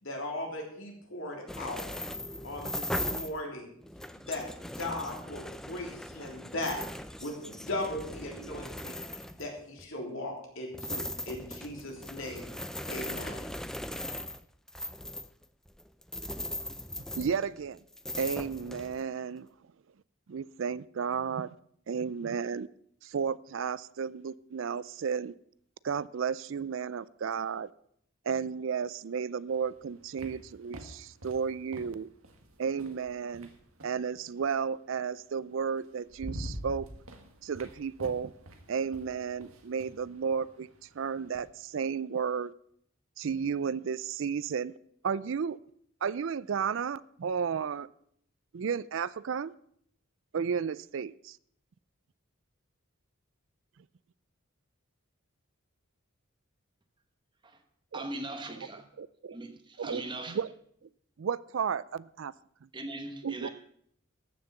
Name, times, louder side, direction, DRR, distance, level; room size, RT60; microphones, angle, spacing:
voice 1, 0.0-1.8 2.4-3.7 4.2-6.8 7.2-12.5 12.9-13.5, left 1 dB, 70° left, 3.4 m, -38 dB
sound 1, 1.5-3.4 3.8-9.8 10.7-17.7 17.9-19.0, left 1 dB, ahead, 0.4 m, -39 dB
voice 2, 17.2-17.8 18.2-19.5 20.3-21.5 21.9-22.7 23.0-25.3 25.8-27.7 28.3-32.1 32.6-33.5 33.8-36.9 37.4-38.3 38.7-40.7 41.0-42.5 43.2-44.7 45.0-45.6 46.0-47.9 48.5-49.5 50.3-51.4 57.9-58.1 59.0-59.4 59.8-60.0 60.3-60.5 61.2-62.3 63.2-63.5, right 6 dB, 65° right, 0.4 m, -33 dB
sound 2, 29.5-34.1 35.3-35.4 35.8-41.5, equal, 80° right, 1.7 m, -46 dB
voice 3, 57.9-58.8 59.3-60.4 62.7-63.5, right 2 dB, 20° right, 1.1 m, -39 dB
14.0 x 6.6 x 7.1 m
head